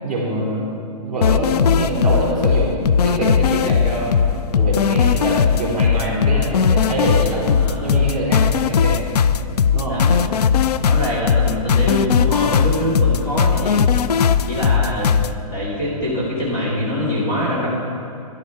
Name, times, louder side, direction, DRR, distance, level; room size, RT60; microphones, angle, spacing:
voice 1, 0.0-0.7 1.0-4.1 4.5-7.5 7.8-9.0 9.7-10.0 14.6-14.9, right 1 dB, ahead, -12 dB, 3.1 m, -24 dB
sound 1, 1.2-15.3, left 7 dB, 75° left, 0.5 m, -18 dB
voice 2, 7.3-8.1 9.9-10.4 10.8-13.9 14.5-15.1 15.5-17.7, equal, 30° left, -6 dB, 2.6 m, -24 dB
13.5 x 11.0 x 4.7 m, 2.5 s
hypercardioid pair, 175°, 20 cm